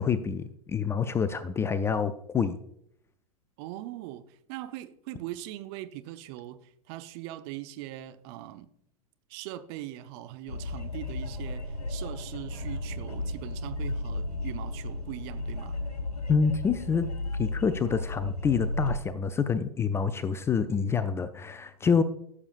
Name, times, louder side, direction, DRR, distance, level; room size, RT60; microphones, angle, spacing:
voice 1, 0.0-2.6 16.3-17.1 17.4-22.0, left 6 dB, 15° left, 0.4 m, -27 dB
voice 2, 3.6-8.7 9.3-15.8, right 14 dB, 40° right, 0.7 m, -41 dB
sound 1, 10.5-18.9, left 2 dB, 80° left, 1.8 m, -34 dB
15.0 x 7.1 x 2.5 m
figure-of-eight pair, 100°, 20 cm